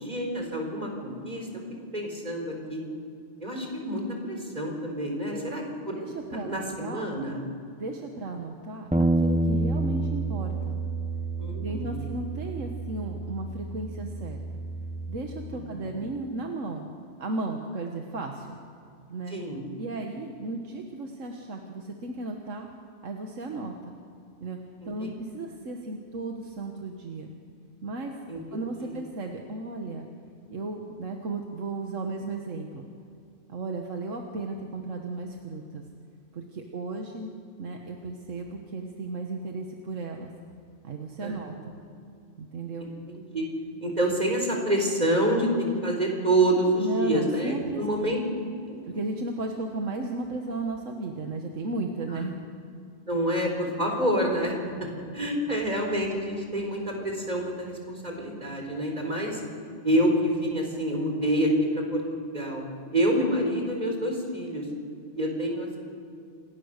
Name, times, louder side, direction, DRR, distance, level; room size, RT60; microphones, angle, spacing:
voice 1, 0.0-1.5 1.9-2.8 3.4-6.0 6.3-7.4 11.4-12.0 15.5-15.9 19.3-19.6 24.8-25.1 28.3-28.9 41.2-41.3 42.8-42.9 43.3-43.5 43.8-48.2 48.7-48.8 52.1-52.2 53.1-59.4 59.8-62.6 62.9-64.7 65.1-65.8, right 1 dB, 35° right, 1 dB, 4.5 m, -27 dB
voice 2, 5.2-5.5 6.0-6.5 6.8-7.1 7.8-10.8 11.5-14.4 15.1-16.9 17.2-18.6 19.1-19.4 19.8-22.7 23.0-24.0 24.4-24.6 24.8-27.3 27.8-28.1 28.5-30.1 30.5-32.8 33.5-35.8 36.3-37.3 37.6-40.3 40.8-41.8 42.4-42.9 46.8-48.1 48.8-52.3, right 2 dB, 85° right, 2 dB, 1.8 m, -35 dB
Bass guitar, 8.9-15.2, right 2 dB, 5° right, 0.8 m, -29 dB
28.5 x 18.0 x 6.7 m, 2.4 s
omnidirectional pair, 1.3 m